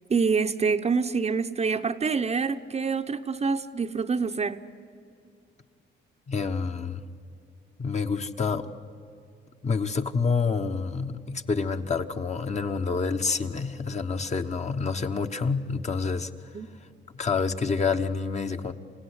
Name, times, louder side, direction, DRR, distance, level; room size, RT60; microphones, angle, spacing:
voice 1, 0.1-4.6 16.5-16.7, right 5 dB, 35° right, 8 dB, 0.8 m, -26 dB
voice 2, 6.3-7.0 7.8-8.6 9.6-16.3 17.1-18.7, left 5 dB, 35° left, 6 dB, 1.2 m, -28 dB
27.5 x 16.5 x 9.9 m, 2.4 s
cardioid pair, 90°, 20 cm